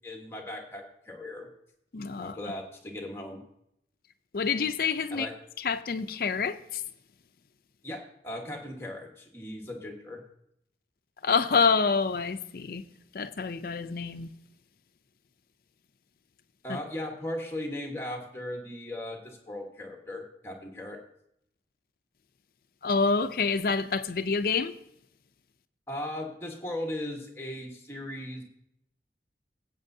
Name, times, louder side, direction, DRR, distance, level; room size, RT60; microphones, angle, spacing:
voice 1, 0.0-1.5 2.2-3.4 5.1-5.3 7.8-10.2 16.6-21.0 25.9-28.4, left 1 dB, 15° left, 1.3 m, -37 dB
voice 2, 1.9-2.3 4.3-5.3 5.6-6.6 11.2-12.8 13.1-14.3 16.7-16.8 22.8-24.7, left 5 dB, 55° left, 0.5 m, -27 dB
14.0 x 8.1 x 2.7 m
head